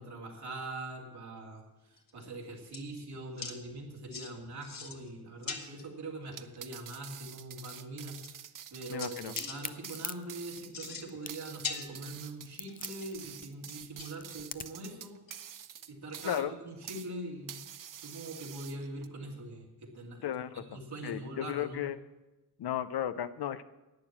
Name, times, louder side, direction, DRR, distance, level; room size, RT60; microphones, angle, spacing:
voice 1, 0.0-1.6 1.9-15.2 15.9-17.6 18.0-20.3 20.5-21.8, right 2 dB, 80° right, -1 dB, 2.6 m, -43 dB
sound 1, 2.0-2.3 2.7-3.0 3.4-3.6 4.1-4.3 4.6-5.1 5.4-5.8 7.2-7.3 7.8-7.9 8.2-8.7 9.0-9.6 10.6-11.4 11.6-12.4 12.7-13.2 13.7-14.3 14.9-15.0 15.3-15.4 15.8-15.9 16.2-16.3 18.3-18.4, left 5 dB, 60° left, 1.3 m, -41 dB
sound 2, 6.3-17.1 17.5-19.1, right 9 dB, 55° right, 0.6 m, -47 dB
voice 2, 8.9-9.3 16.2-16.5 20.2-20.6 21.0-22.0 22.6-23.6, left 10 dB, 80° left, 13 dB, 0.6 m, -34 dB
Crack, 9.2-14.9, left 5 dB, 25° left, 0.4 m, -43 dB
11.5 x 9.0 x 7.3 m, 1.0 s
wide cardioid pair, 125°, 38 cm